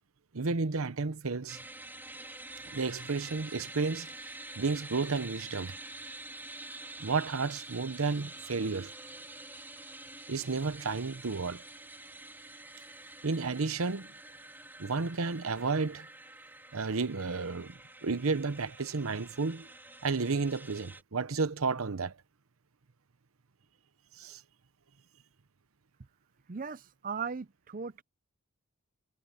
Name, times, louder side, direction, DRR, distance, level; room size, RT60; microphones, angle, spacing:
voice 1, 0.3-1.6 2.7-4.1 4.6-5.7 7.0-8.9 10.3-11.6 13.2-14.1 14.8-16.1 16.7-19.7 20.0-22.1 24.2-24.4, right 4 dB, 75° right, 0.9 m, -32 dB
sound 1, 1.5-21.0, right 2 dB, 10° right, 3.7 m, -47 dB
voice 2, 26.5-28.0, right 5 dB, 40° right, 0.5 m, -38 dB
head